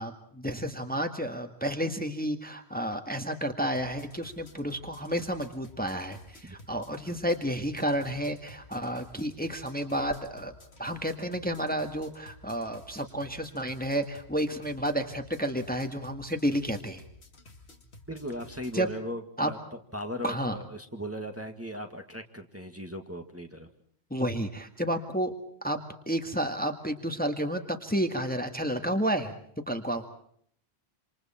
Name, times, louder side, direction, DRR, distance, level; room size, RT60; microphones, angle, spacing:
voice 1, 0.0-10.5 10.8-17.0 18.7-18.9 19.4-19.5 20.2-20.6 24.1-25.3 25.6-29.3 29.7-30.0, equal, 10° left, 6 dB, 1.8 m, -31 dB
sound 1, 3.7-18.7, left 2 dB, 75° left, 2.7 m, -53 dB
voice 2, 18.1-19.6 19.9-23.7, equal, 15° right, 4 dB, 1.8 m, -38 dB
27.5 x 27.0 x 4.4 m, 0.64 s
omnidirectional pair, 1.1 m